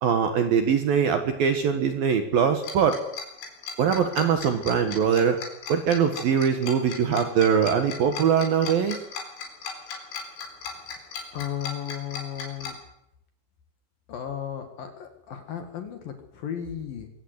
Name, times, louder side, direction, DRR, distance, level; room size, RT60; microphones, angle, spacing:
voice 1, 0.0-3.0 3.8-5.4 5.7-9.0, right 7 dB, 60° right, 7 dB, 2.7 m, -22 dB
Tick-tock, 2.6-12.7, left 5 dB, 70° left, 6.4 m, -36 dB
voice 2, 11.3-12.8 14.1-17.1, left 9 dB, 55° left, 7 dB, 3.1 m, -35 dB
24.0 x 16.5 x 8.1 m, 0.78 s
omnidirectional pair, 5.7 m